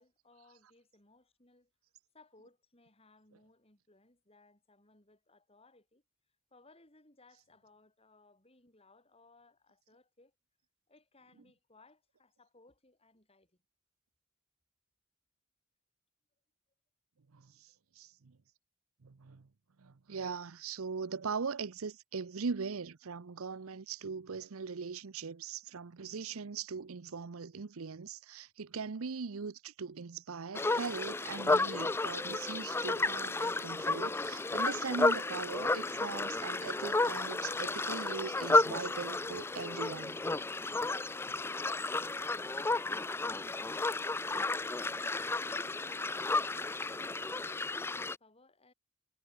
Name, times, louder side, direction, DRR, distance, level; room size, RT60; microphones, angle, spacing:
voice 1, 0.0-1.7 2.1-6.0 6.5-10.3 10.9-13.6 45.5-48.7, left 2 dB, 25° left, 4.9 m, -64 dB
voice 2, 17.3-18.4 19.0-19.5 19.8-40.2, right 5 dB, 80° right, 0.7 m, -40 dB
sound 1, 30.5-48.2, left 3 dB, 10° left, 0.3 m, -32 dB
head